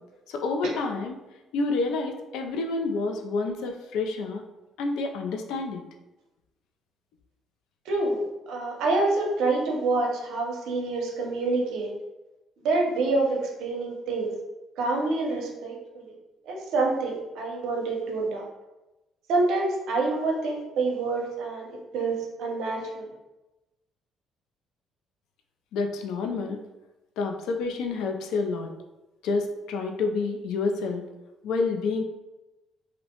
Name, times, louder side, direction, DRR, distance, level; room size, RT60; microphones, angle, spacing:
voice 1, 0.3-1.2 1.5-4.4 4.8-5.8 25.7-26.6 27.2-28.7 29.2-31.0 31.4-32.0, left 3 dB, 85° left, 4 dB, 0.3 m, -28 dB
voice 2, 7.9-11.9 12.6-14.3 14.8-16.1 16.5-18.5 19.3-21.7 21.9-23.0, right 3 dB, 75° right, 0 dB, 0.6 m, -27 dB
2.7 x 2.0 x 2.8 m, 1.0 s
cardioid pair, 145°, 0 cm